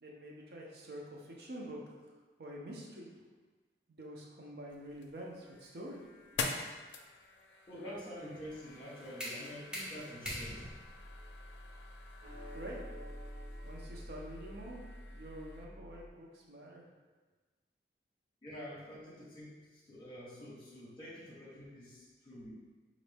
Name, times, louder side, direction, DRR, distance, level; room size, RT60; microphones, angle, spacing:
voice 1, 0.0-1.8 2.4-3.2 3.9-6.0 12.5-12.8 13.6-14.8 15.1-16.8, right 1 dB, 65° right, -2 dB, 0.7 m, -47 dB
sound 1, 4.7-15.7, left 4 dB, 85° left, 0.5 m, -47 dB
voice 2, 7.7-10.7 18.4-22.5, equal, 30° left, -6 dB, 1.1 m, -47 dB
sound 2, 8.5-14.3, equal, 5° right, 0.7 m, -46 dB
sound 3, 11.0-16.1, equal, 90° right, 1.2 m, -48 dB
5.1 x 2.6 x 3.4 m, 1.3 s
head